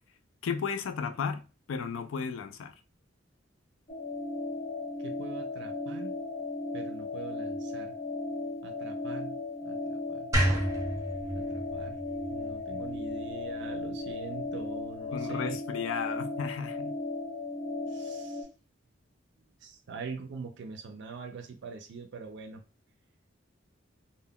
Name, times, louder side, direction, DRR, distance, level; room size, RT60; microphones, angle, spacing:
voice 1, 0.4-2.7 15.1-16.9, left 6 dB, 85° left, 0.4 m, -34 dB
sound 1, 3.9-18.4, left 2 dB, 40° left, 0.6 m, -36 dB
voice 2, 5.0-6.2 6.7-7.9 8.6-9.4 9.6-10.3 11.3-12.0 12.3-15.6 17.9-18.5 19.6-22.6, right 5 dB, 65° right, 0.4 m, -43 dB
sound 2, 10.3-13.5, right 1 dB, 15° right, 0.6 m, -31 dB
2.2 x 2.1 x 3.5 m
head